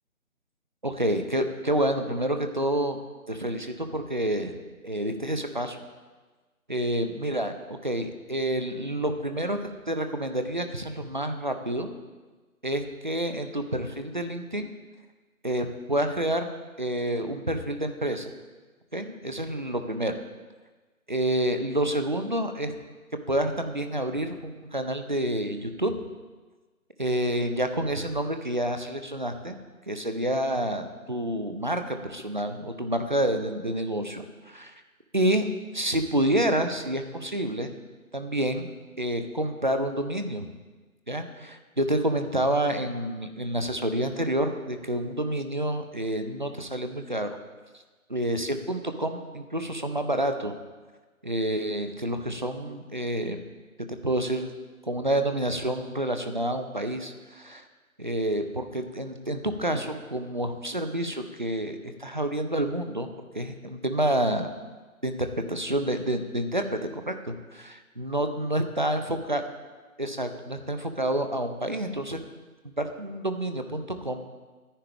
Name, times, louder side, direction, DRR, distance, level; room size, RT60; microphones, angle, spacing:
voice 1, 0.8-3.0 3.3-4.6 4.8-5.8 6.7-7.5 7.8-9.6 9.9-11.9 12.6-14.7 15.4-16.5 16.8-18.3 18.9-20.1 21.1-22.7 23.3-25.9 27.0-29.6 29.9-34.7 35.1-35.5 35.7-37.7 38.1-38.7 39.0-40.5 41.1-47.4 48.1-50.5 51.2-53.4 54.0-54.5 54.8-57.6 58.0-63.1 63.3-64.5 65.0-65.2 65.5-69.0 69.3-69.4 70.0-72.2 72.8-74.2, right 1 dB, 35° right, 7 dB, 0.8 m, -28 dB
21.0 x 10.0 x 3.6 m, 1.3 s
figure-of-eight pair, 160°, 43 cm